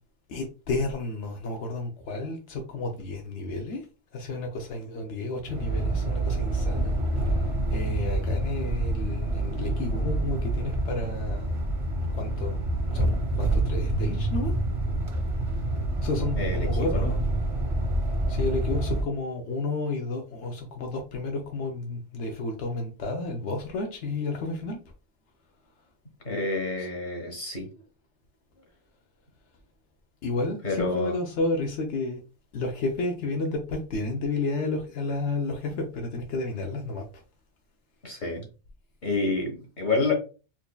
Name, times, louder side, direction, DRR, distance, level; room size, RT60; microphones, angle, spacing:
voice 1, 0.3-3.8 4.1-6.9 7.2-11.6 12.1-12.6 12.9-14.5 16.0-17.2 18.3-24.8 26.8-26.9 30.2-32.2 32.5-37.0, left 2 dB, 80° left, 3 dB, 0.9 m, -31 dB
sound 1, 5.4-19.0, right 2 dB, 35° right, 0.6 m, -27 dB
voice 2, 16.4-17.1 26.2-27.7 30.6-31.1 38.0-38.4 39.0-40.1, left 3 dB, 45° left, 2 dB, 1.3 m, -28 dB
4.5 x 2.7 x 2.2 m, 0.33 s
omnidirectional pair, 1.2 m